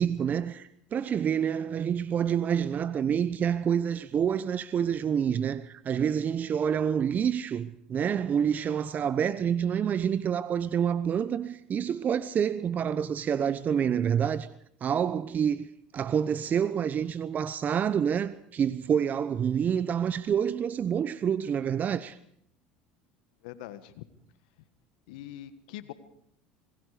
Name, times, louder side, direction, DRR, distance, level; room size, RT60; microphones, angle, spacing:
voice 1, 0.0-14.5 14.8-15.7 15.9-22.2, right 8 dB, 40° right, 0.9 m, -27 dB
voice 2, 23.4-24.0 25.1-25.9, left 13 dB, 75° left, 1.5 m, -43 dB
27.0 x 20.5 x 5.0 m
hypercardioid pair, 85°, 4 cm